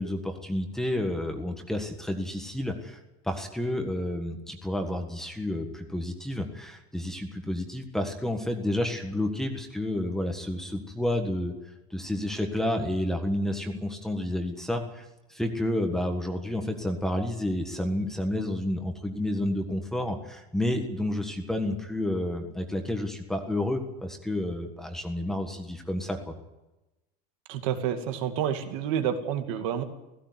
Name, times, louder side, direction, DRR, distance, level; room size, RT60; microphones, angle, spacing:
voice 1, 0.0-3.0 3.2-11.5 11.9-26.3, left 1 dB, ahead, 4 dB, 1.6 m, -30 dB
voice 2, 27.5-29.8, right 9 dB, 55° right, 7 dB, 2.4 m, -29 dB
16.5 x 16.5 x 9.6 m, 0.99 s
cardioid pair, 180°, 20 cm